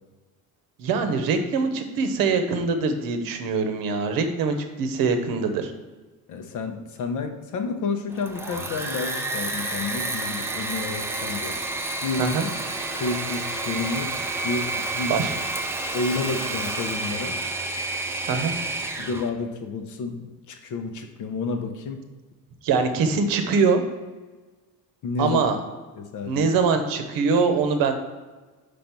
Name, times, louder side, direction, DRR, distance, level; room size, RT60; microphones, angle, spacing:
voice 1, 0.8-5.7 12.2-12.5 15.1-15.3 18.3-18.5 22.6-23.8 25.2-25.6 26.3-27.9, right 4 dB, 70° right, 7 dB, 1.0 m, -23 dB
voice 2, 6.3-11.6 12.0-12.4 12.9-14.2 14.4-15.2 15.9-17.4 19.0-22.0 25.0-25.4 26.0-26.5, left 4 dB, 55° left, 6 dB, 0.9 m, -30 dB
Engine / Mechanisms, 8.1-19.3, right 2 dB, 10° right, 0.3 m, -30 dB
5.2 x 5.1 x 6.0 m, 1.3 s
cardioid pair, 165°, 36 cm